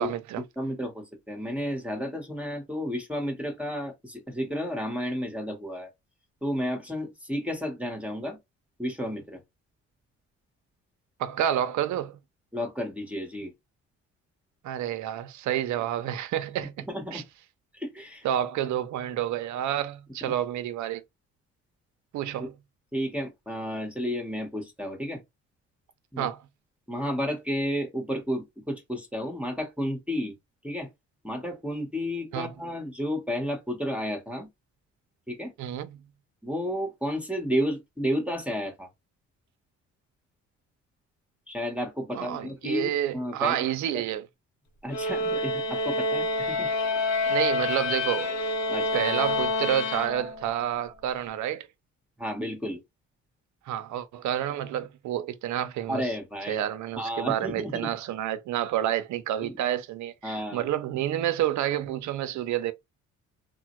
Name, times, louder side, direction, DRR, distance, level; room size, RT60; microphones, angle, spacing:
voice 1, 0.0-0.4 11.2-12.2 14.6-16.7 17.1-17.2 18.2-21.0 22.1-22.5 26.2-26.4 32.3-32.5 35.6-36.0 42.1-44.3 47.3-48.4 48.9-51.7 53.7-56.1 56.5-62.7, right 11 dB, 70° right, 0.6 m, -29 dB
voice 2, 0.6-5.9 6.4-8.4 8.8-9.4 12.5-13.5 16.9-17.2 17.7-18.3 22.9-25.2 26.1-26.3 26.9-30.3 30.6-30.9 31.2-34.5 35.3-35.5 36.4-38.9 41.5-43.6 43.9-44.0 44.8-46.7 48.7-49.0 52.2-52.8 55.9-56.6 57.0-57.9 59.4-59.6 60.2-60.7, equal, 5° right, 1.0 m, -32 dB
sound 1, 44.9-50.6, left 2 dB, 65° left, 0.9 m, -28 dB
3.3 x 2.1 x 2.9 m
cardioid pair, 90°, 30 cm